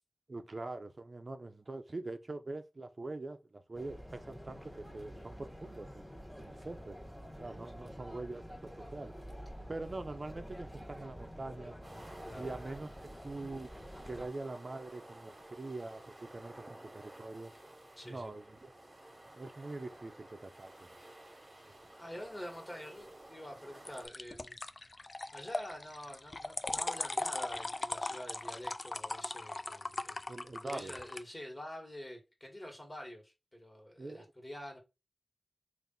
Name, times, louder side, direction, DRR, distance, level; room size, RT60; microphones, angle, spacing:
voice 1, 0.3-7.0 7.4-9.1 9.7-11.7 12.4-13.7 14.0-17.5 18.0-18.7 19.3-20.7 30.3-31.0 34.0-34.3, right 2 dB, 55° right, 0.6 m, -44 dB
sound 1, 3.7-14.3, equal, 5° left, 1.2 m, -48 dB
sound 2, 11.8-24.1, right 1 dB, 35° right, 1.3 m, -54 dB
voice 2, 12.2-12.6 18.0-18.3 21.2-21.3 22.0-24.6 25.3-30.3 30.6-34.8, equal, 25° left, 1.6 m, -47 dB
sound 3, 13.6-14.3 23.9-31.2, left 2 dB, 50° left, 0.3 m, -39 dB
3.4 x 2.6 x 3.9 m
wide cardioid pair, 50°, 0 cm